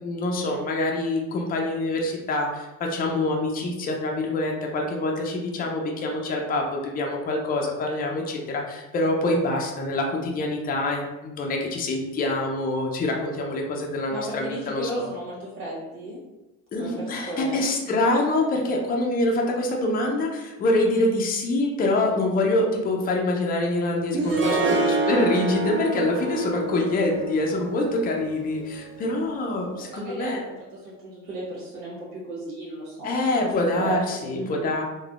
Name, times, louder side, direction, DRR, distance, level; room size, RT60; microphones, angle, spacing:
voice 1, 0.0-15.1 16.7-30.4 33.0-34.8, left 2 dB, 25° left, 0 dB, 0.4 m, -25 dB
voice 2, 14.1-16.2 16.8-17.6 24.1-24.8 29.8-30.5 30.8-33.3 33.6-34.0 34.2-34.7, right 2 dB, 85° right, -7 dB, 1.3 m, -33 dB
Harp, 24.3-29.4, right 2 dB, 35° right, 0.5 m, -28 dB
3.4 x 2.2 x 2.4 m, 1.0 s
cardioid pair, 125°, 37 cm